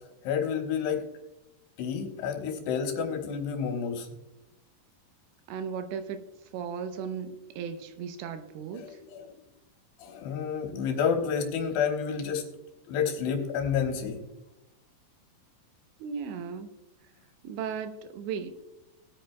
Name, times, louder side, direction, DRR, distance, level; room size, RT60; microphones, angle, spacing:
voice 1, 0.2-1.1 1.8-4.1 8.7-9.3 10.0-12.5 12.9-14.2, left 7 dB, 75° left, 3 dB, 3.2 m, -30 dB
voice 2, 5.5-6.3 6.5-9.0 16.0-16.7 17.4-18.6, right 6 dB, 85° right, 8 dB, 3.1 m, -36 dB
19.5 x 8.7 x 2.3 m, 0.97 s
omnidirectional pair, 5.0 m